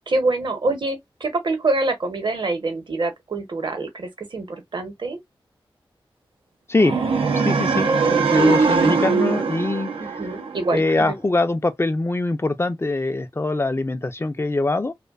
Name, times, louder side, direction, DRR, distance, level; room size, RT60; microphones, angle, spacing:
voice 1, 0.1-5.2 8.1-8.6 10.0-11.2, right 2 dB, 60° right, 0.9 m, -26 dB
sound 1, 6.8-10.9, right 4 dB, 90° right, 0.5 m, -21 dB
voice 2, 7.3-7.9 8.3-9.9 10.7-14.9, left 2 dB, 30° left, 0.4 m, -22 dB
2.5 x 2.1 x 2.3 m
cardioid pair, 45°, 9 cm